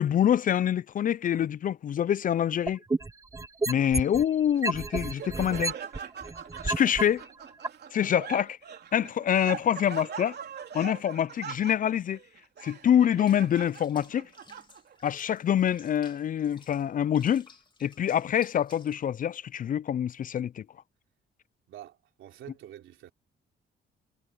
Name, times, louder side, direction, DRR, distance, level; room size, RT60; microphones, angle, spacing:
voice 1, 0.0-2.8 3.7-5.8 6.6-7.2 7.9-8.6 8.9-10.4 10.7-12.2 12.6-14.3 15.0-17.5 17.8-20.7, left 9 dB, 45° left, 0.4 m, -26 dB
sound 1, 2.7-4.2 4.6-7.0 7.6-7.7, right 3 dB, 15° right, 0.8 m, -30 dB
Laughter, 4.5-15.1, right 8 dB, 55° right, 3.4 m, -42 dB
Water / Bathtub (filling or washing), 13.2-19.1, left 3 dB, 25° left, 2.8 m, -56 dB
voice 2, 21.7-23.1, right 12 dB, 80° right, 3.5 m, -47 dB
cardioid pair, 90°, 20 cm